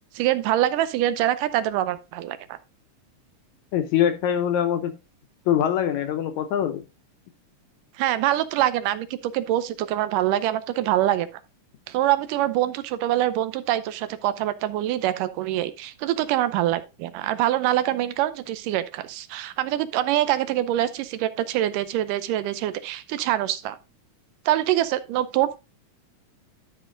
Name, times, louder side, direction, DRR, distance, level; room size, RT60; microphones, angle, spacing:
voice 1, 0.1-2.6 8.0-11.3 11.9-23.8 24.5-25.6, right 13 dB, 85° right, 2.3 m, -24 dB
voice 2, 3.7-4.9 5.5-6.8, left 9 dB, 75° left, 2.0 m, -23 dB
12.0 x 4.5 x 3.8 m
omnidirectional pair, 3.8 m